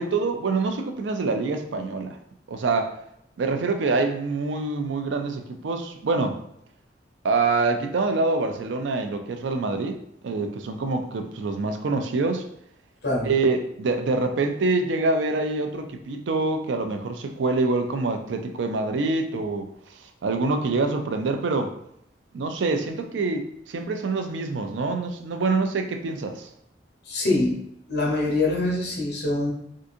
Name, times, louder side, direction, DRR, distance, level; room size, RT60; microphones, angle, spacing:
voice 1, 0.0-2.2 2.5-3.0 3.4-6.4 7.2-12.5 13.2-19.7 20.2-21.7 22.3-26.5, right 3 dB, 90° right, 6 dB, 0.4 m, -25 dB
voice 2, 27.1-27.6 27.9-29.5, left 2 dB, 65° left, -2 dB, 1.0 m, -24 dB
3.6 x 2.5 x 2.6 m, 0.76 s
head